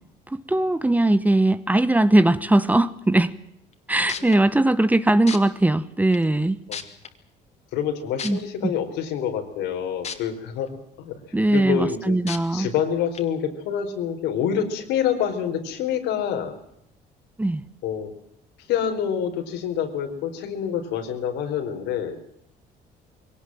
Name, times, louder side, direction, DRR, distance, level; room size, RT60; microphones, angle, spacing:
voice 1, 0.3-3.3 3.9-6.6 8.2-8.7 11.3-12.7 17.4-17.6, right 1 dB, 10° right, 15 dB, 1.1 m, -20 dB
sound 1, 3.7-3.8 4.1-4.4 5.3-5.4 6.1-6.2 6.7-7.1 8.2-8.3 10.0-10.1 10.7-10.8 12.3-12.4 13.1-13.2, left 6 dB, 40° left, 2.8 m, -31 dB
voice 2, 7.7-11.2 11.5-12.2 12.5-16.6 17.8-18.1 18.7-22.1, left 8 dB, 90° left, 5 dB, 4.5 m, -27 dB
22.5 x 18.0 x 7.7 m, 0.78 s
cardioid pair, 110°, 17 cm